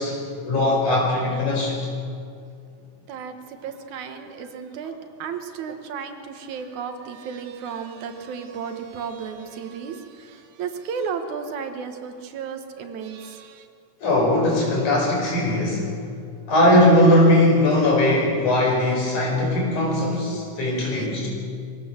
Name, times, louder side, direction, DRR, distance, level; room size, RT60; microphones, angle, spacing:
voice 1, 0.0-1.8 14.0-15.9 16.5-21.3, left 1 dB, 80° left, -2 dB, 6.4 m, -19 dB
voice 2, 3.1-4.9 5.2-13.7 20.8-21.1, right 6 dB, 75° right, 7 dB, 2.7 m, -34 dB
23.5 x 17.0 x 7.3 m, 2.3 s
omnidirectional pair, 3.4 m